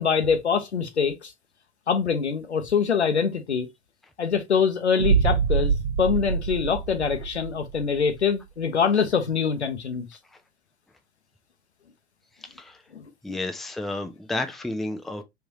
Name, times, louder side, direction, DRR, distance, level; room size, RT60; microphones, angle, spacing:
voice 1, 0.0-1.3 1.9-3.7 4.2-5.7 6.0-10.1 12.9-13.4, left 6 dB, 85° left, 0.8 m, -24 dB
sound 1, 5.0-8.0, right 6 dB, 75° right, 1.1 m, -25 dB
voice 2, 13.2-15.2, left 2 dB, ahead, 0.4 m, -31 dB
3.5 x 3.3 x 2.7 m
figure-of-eight pair, 80°, 33 cm